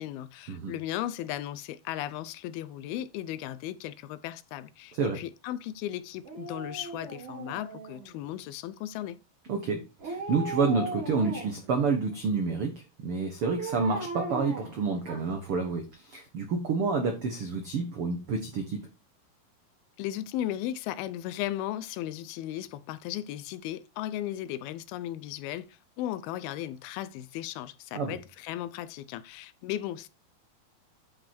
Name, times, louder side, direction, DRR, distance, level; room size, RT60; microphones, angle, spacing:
voice 1, 0.0-9.2 20.0-25.7 26.0-30.1, left 12 dB, 85° left, 2.5 m, -36 dB
Dog, 6.2-8.3 10.0-11.7 13.4-15.5 15.9-16.0, right 3 dB, 40° right, 2.9 m, -38 dB
voice 2, 9.5-18.8 27.9-28.2, right 4 dB, 75° right, 1.2 m, -29 dB
9.5 x 5.4 x 4.4 m
omnidirectional pair, 4.4 m